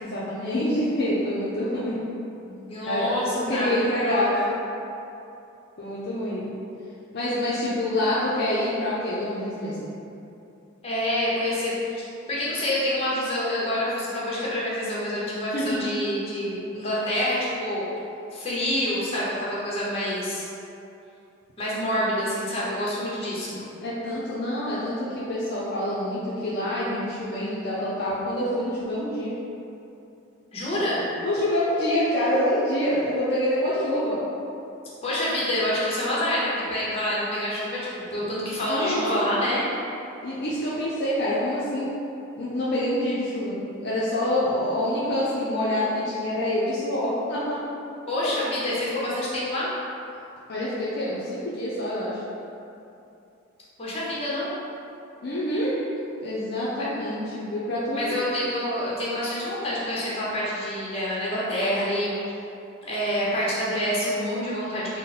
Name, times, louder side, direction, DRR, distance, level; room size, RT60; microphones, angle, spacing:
voice 1, 0.0-2.0 2.8-3.1 3.5-4.3 5.8-6.5 7.1-9.9 15.5-15.9 23.8-29.3 31.2-34.2 38.7-39.1 40.2-41.9 42.4-47.6 48.3-48.4 50.5-52.2 55.2-55.7 56.2-58.2, left 1 dB, 55° left, -9 dB, 0.5 m, -26 dB
voice 2, 2.4-4.5 10.8-17.8 18.3-20.4 21.6-23.6 30.5-31.0 35.0-37.8 38.1-39.7 48.1-49.7 53.8-54.5 56.8-56.9 57.9-62.3 62.9-65.0, left 1 dB, 30° left, -7 dB, 0.8 m, -27 dB
3.8 x 2.1 x 4.1 m, 2.8 s
head